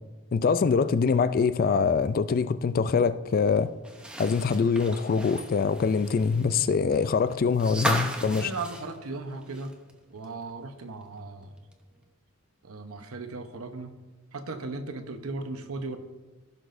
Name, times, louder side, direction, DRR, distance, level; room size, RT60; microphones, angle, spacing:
voice 1, 0.3-3.7 4.2-8.5, left 5 dB, 40° left, 0.3 m, -24 dB
sound 1, 3.8-9.9 10.2-10.3 11.7-11.8, right 1 dB, 5° right, 0.7 m, -35 dB
voice 2, 8.4-9.7 10.1-11.5 12.6-13.9 14.3-16.0, right 3 dB, 80° right, 0.9 m, -37 dB
16.0 x 6.1 x 2.6 m
head